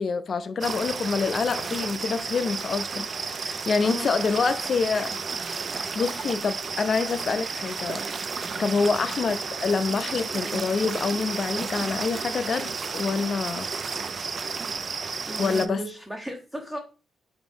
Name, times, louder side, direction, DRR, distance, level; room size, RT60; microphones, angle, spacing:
voice 1, 0.0-5.2 5.5-8.0 8.6-13.7 15.4-15.8, left 5 dB, 50° left, 0.4 m, -27 dB
sound 1, 0.6-15.7, right 5 dB, 45° right, 0.3 m, -32 dB
voice 2, 3.8-4.3 8.8-9.1 15.3-16.8, right 1 dB, 10° right, 0.6 m, -36 dB
3.8 x 2.6 x 3.4 m
cardioid pair, 100°, 0 cm